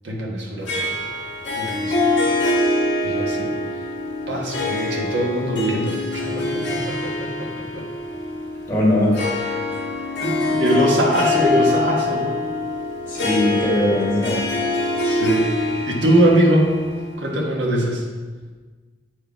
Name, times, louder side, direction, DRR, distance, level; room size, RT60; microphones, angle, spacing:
voice 1, 0.0-1.0 1.5-2.1 3.0-3.5 4.3-7.8 10.2-12.3 15.0-15.5 15.9-16.7 17.2-18.0, right 1 dB, 90° right, -1 dB, 1.4 m, -22 dB
Harp, 0.7-17.4, left 2 dB, 80° left, 1.5 m, -24 dB
voice 2, 8.7-9.2 13.1-14.4, left 1 dB, 10° left, -7 dB, 2.2 m, -20 dB
7.7 x 4.9 x 4.5 m, 1.4 s
head